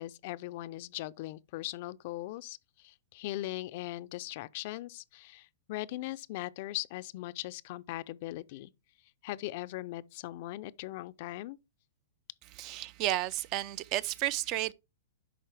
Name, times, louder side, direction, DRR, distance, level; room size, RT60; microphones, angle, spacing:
voice 1, 0.0-8.7 9.2-11.6, left 16 dB, 50° left, 0.4 m, -39 dB
voice 2, 12.6-14.7, right 15 dB, 35° right, 0.3 m, -32 dB
10.5 x 3.7 x 3.3 m
hypercardioid pair, 145°, 0 cm